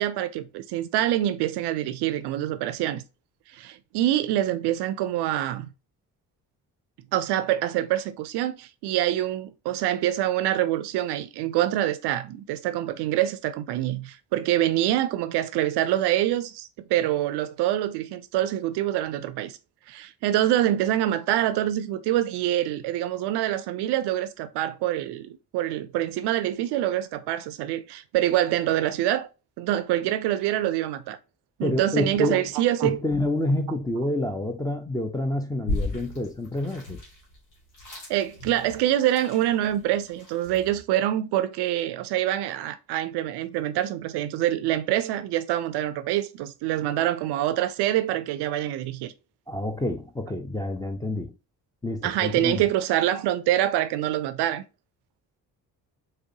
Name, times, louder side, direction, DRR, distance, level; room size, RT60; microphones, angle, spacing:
voice 1, 0.0-3.0 3.5-5.7 7.1-19.6 19.9-29.3 29.6-31.2 31.6-33.0 38.1-49.1 52.0-54.6, right 13 dB, 55° right, 0.5 m, -25 dB
voice 2, 31.6-32.4 32.8-37.0 49.5-51.3 51.8-52.6, left 1 dB, 10° left, 0.4 m, -28 dB
sound 1, 35.7-40.8, left 2 dB, 80° left, 1.3 m, -35 dB
4.7 x 2.1 x 2.7 m
figure-of-eight pair, 40°, 49 cm